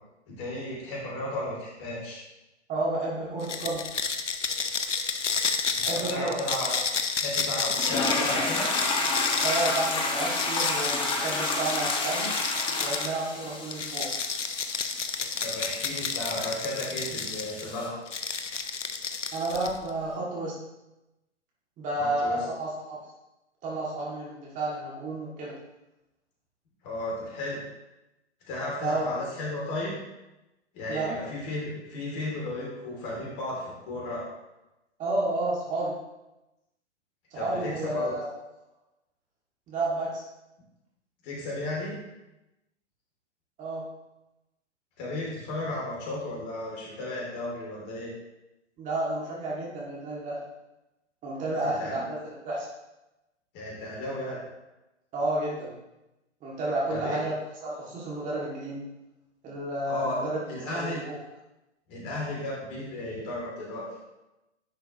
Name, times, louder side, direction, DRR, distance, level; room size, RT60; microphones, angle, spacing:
voice 1, 0.3-2.2 5.7-6.7 7.2-8.7 15.4-18.0 22.0-22.4 26.8-27.6 28.5-30.0 30.7-34.2 37.3-38.1 41.2-41.9 45.0-48.1 51.6-52.0 53.5-54.4 56.9-57.2 59.9-60.2 60.5-61.0 61.9-63.9, left 1 dB, 30° left, -4 dB, 2.8 m, -34 dB
voice 2, 2.7-3.9 5.8-6.4 9.4-12.3 12.8-14.2 19.3-20.6 21.8-23.1 23.6-25.6 28.8-29.1 30.9-31.2 35.0-36.0 37.3-38.3 39.7-40.2 43.6-43.9 48.8-50.4 51.2-52.7 55.1-55.8 56.4-58.9 59.4-60.4 60.7-61.2, right 2 dB, 20° right, -5 dB, 2.1 m, -31 dB
sound 1, 3.4-13.2 13.7-17.7 18.1-19.9, left 5 dB, 85° left, 0.8 m, -31 dB
sound 2, 7.7-17.9, left 3 dB, 15° left, 0.9 m, -31 dB
10.5 x 5.6 x 3.0 m, 0.96 s
hypercardioid pair, 125°, 35 cm